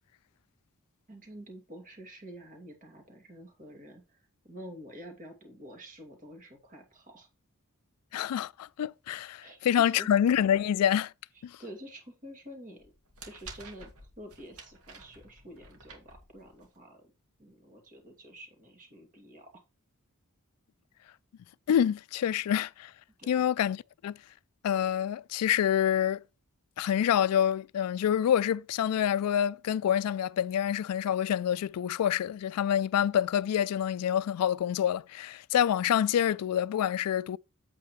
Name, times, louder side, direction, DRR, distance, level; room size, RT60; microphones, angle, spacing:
voice 1, 1.1-4.2 4.4-7.3 9.4-9.6 10.0-10.1 11.6-12.9 13.2-13.9 14.2-17.1 17.4-19.5 23.2-23.5, equal, 35° right, 2.5 m, -48 dB
voice 2, 8.1-11.1 11.4-11.5 21.7-22.9 23.3-24.1 24.6-26.2 26.8-37.4, left 9 dB, 80° left, 0.3 m, -27 dB
sound 1, 12.8-16.8, right 3 dB, 75° right, 2.3 m, -50 dB
8.4 x 7.6 x 3.1 m
head